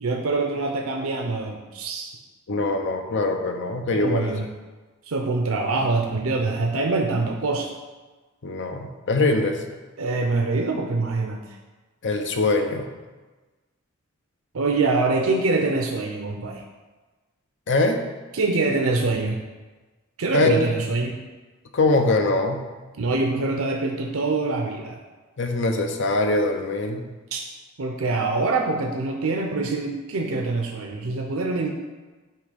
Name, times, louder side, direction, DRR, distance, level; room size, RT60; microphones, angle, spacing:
voice 1, 0.0-2.1 3.9-4.5 5.1-7.7 10.0-11.4 14.5-16.6 18.3-19.4 20.2-21.2 23.0-25.0 27.3-27.4 27.8-31.7, right 3 dB, 80° right, 2 dB, 0.6 m, -24 dB
voice 2, 2.5-4.3 8.4-9.6 12.0-12.9 17.7-18.0 20.3-20.6 21.7-22.7 25.4-27.1, left 2 dB, 60° left, 5 dB, 0.7 m, -22 dB
8.6 x 3.1 x 5.1 m, 1.3 s
head